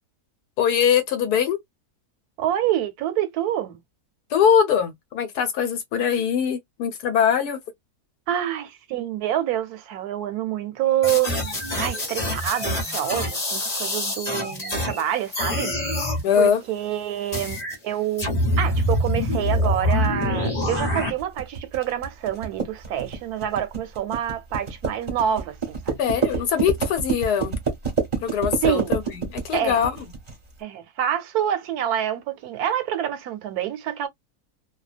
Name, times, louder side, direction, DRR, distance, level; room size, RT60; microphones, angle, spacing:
voice 1, 0.6-1.6 4.3-7.6 16.2-16.6 26.0-27.5 28.2-29.9, left 8 dB, 80° left, 1.3 m, -22 dB
voice 2, 2.4-3.8 8.3-18.3 18.6-26.0 28.6-28.9 29.5-29.8 30.6-34.1, right 11 dB, 80° right, 1.1 m, -27 dB
sound 1, 11.0-15.0 15.3-16.2 17.3-17.7 18.2-21.1, left 1 dB, 30° left, 1.1 m, -25 dB
sound 2, 18.8-30.4, right 5 dB, 35° right, 0.7 m, -28 dB
2.7 x 2.2 x 2.3 m
omnidirectional pair, 1.7 m